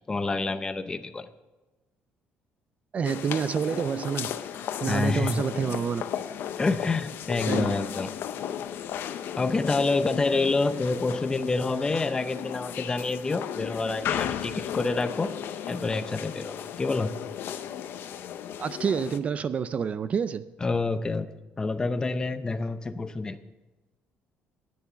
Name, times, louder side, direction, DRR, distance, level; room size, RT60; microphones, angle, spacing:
voice 1, 0.1-1.3 4.9-5.4 6.6-8.1 9.4-15.3 15.7-17.1 20.6-21.3 21.6-23.4, left 3 dB, 20° left, 12 dB, 0.6 m, -27 dB
voice 2, 2.9-4.4 4.8-6.0 7.5-7.7 18.6-20.5, right 6 dB, 35° right, 15 dB, 0.3 m, -28 dB
sound 1, 3.0-19.2, left 9 dB, 60° left, 0.7 m, -35 dB
10.5 x 9.5 x 7.2 m, 1.1 s
cardioid pair, 145°, 4 cm